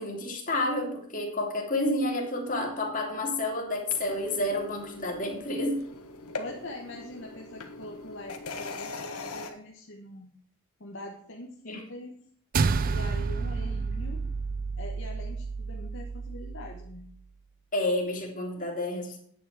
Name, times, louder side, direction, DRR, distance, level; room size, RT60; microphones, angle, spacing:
voice 1, 0.0-5.8 11.7-11.8 17.7-19.2, left 1 dB, 35° left, 0 dB, 2.8 m, -30 dB
sound 1, 3.9-9.5, left 3 dB, 85° left, 1.6 m, -41 dB
voice 2, 6.3-10.3 10.8-12.2 12.8-14.2 14.8-17.1, left 1 dB, 55° left, 0 dB, 1.3 m, -43 dB
sound 2, 12.5-17.1, right 4 dB, 40° right, 0.4 m, -30 dB
10.0 x 8.7 x 4.9 m, 0.62 s
head